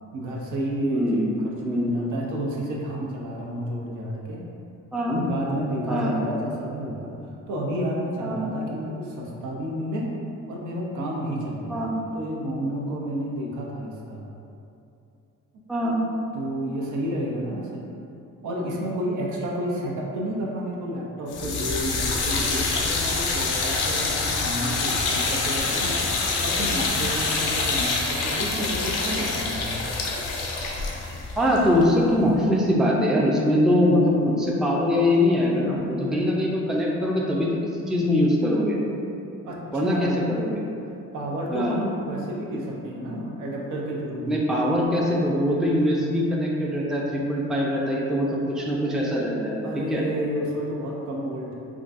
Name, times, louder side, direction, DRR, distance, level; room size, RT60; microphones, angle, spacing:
voice 1, 0.1-4.4 5.1-7.1 7.5-10.1 10.5-11.9 12.1-14.3 16.3-17.9 18.4-26.0 26.4-29.8 39.4-40.2 41.1-44.7 49.6-51.5, right 1 dB, 80° right, -2 dB, 0.6 m, -30 dB
voice 2, 0.9-1.2 1.6-1.9 4.9-5.2 5.9-6.1 8.2-8.4 11.7-11.9 15.7-16.0 31.4-37.6 37.9-38.8 39.7-40.6 41.5-41.8 44.3-50.0, left 1 dB, ahead, -3 dB, 0.4 m, -22 dB
sound 1, 21.3-32.4, left 3 dB, 90° left, 0.5 m, -26 dB
3.7 x 2.3 x 2.5 m, 2.7 s
cardioid pair, 90°, 30 cm